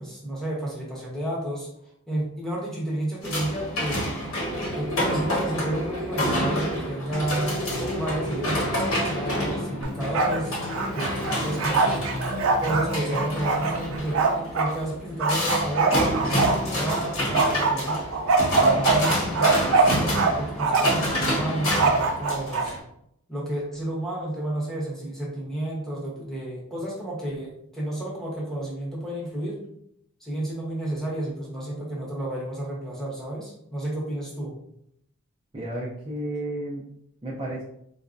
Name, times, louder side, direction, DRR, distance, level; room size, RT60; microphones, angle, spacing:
voice 1, 0.0-1.7 2.1-4.2 4.7-7.6 7.9-10.6 10.9-12.0 12.6-18.0 18.6-22.7 23.3-29.6 30.2-34.5, right 1 dB, ahead, -6 dB, 1.0 m, -31 dB
sound 1, 3.2-22.8, equal, 75° left, 1.1 m, -28 dB
sound 2, 7.1-14.0, left 3 dB, 40° left, 0.3 m, -37 dB
Bark, 9.8-10.4 10.7-14.7 15.2-17.0 17.3-20.3 20.6-21.1 21.7-22.7, right 4 dB, 80° right, 0.5 m, -23 dB
voice 2, 35.5-36.9 37.2-37.6, right 1 dB, 25° right, -6 dB, 0.5 m, -32 dB
4.0 x 2.2 x 2.5 m, 0.74 s
head